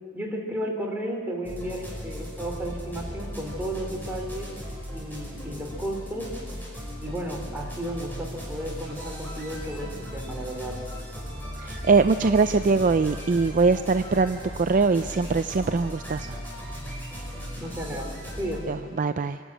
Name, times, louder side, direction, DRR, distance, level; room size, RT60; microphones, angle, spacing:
voice 1, 0.1-4.5 4.9-6.3 7.0-10.7 17.6-18.8, equal, 10° right, -1 dB, 3.2 m, -33 dB
sound 1, 1.4-18.6, equal, 10° left, 5.8 m, -37 dB
voice 2, 11.6-16.4 18.7-19.4, right 4 dB, 40° right, 10 dB, 0.4 m, -22 dB
25.5 x 12.5 x 8.9 m, 2.2 s
head